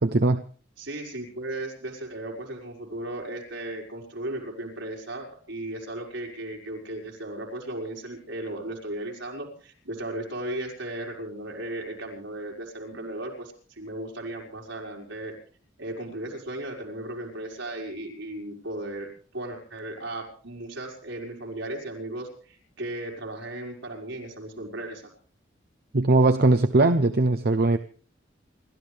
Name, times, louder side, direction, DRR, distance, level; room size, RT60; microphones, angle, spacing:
voice 1, 0.0-0.5 25.9-27.8, right 2 dB, 55° right, 8 dB, 0.8 m, -20 dB
voice 2, 0.8-15.3 15.8-19.1 19.3-25.0, right 1 dB, 85° right, 0 dB, 5.2 m, -36 dB
28.5 x 13.5 x 3.5 m, 0.41 s
head